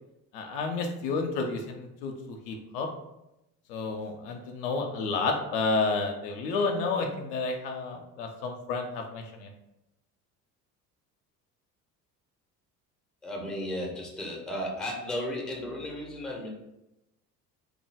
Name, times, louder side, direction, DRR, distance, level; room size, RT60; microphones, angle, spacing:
voice 1, 0.3-2.9 3.7-9.5, left 3 dB, 55° left, 3 dB, 0.5 m, -31 dB
voice 2, 13.2-16.5, left 1 dB, ahead, -1 dB, 0.5 m, -34 dB
3.0 x 2.2 x 3.2 m, 0.90 s
figure-of-eight pair, 60°, 48 cm